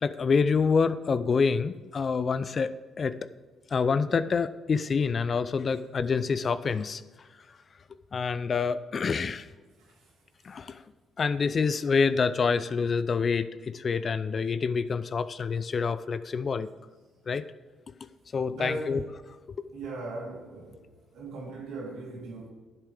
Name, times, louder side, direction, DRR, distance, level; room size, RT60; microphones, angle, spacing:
voice 1, 0.0-3.2 3.7-7.0 8.1-9.5 10.4-10.8 11.2-16.7 17.3-17.4 18.3-19.0 19.6-19.7, left 5 dB, 45° left, 0.6 m, -27 dB
voice 2, 18.5-18.9 19.7-20.8 21.1-22.5, right 2 dB, 75° right, 3.3 m, -38 dB
11.5 x 6.9 x 4.9 m
hypercardioid pair, 50°, 0 cm